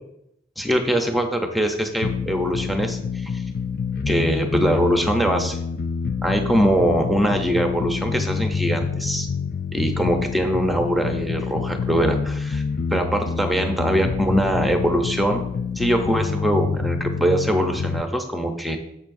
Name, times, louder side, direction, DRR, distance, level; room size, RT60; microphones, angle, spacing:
voice 1, 0.6-3.4 4.1-5.6 6.2-9.3 9.7-12.6 12.9-15.4 15.8-18.8, equal, ahead, 4 dB, 0.7 m, -22 dB
sound 1, 2.0-18.0, left 5 dB, 50° left, 0.3 m, -27 dB
10.5 x 7.5 x 2.6 m, 0.79 s
head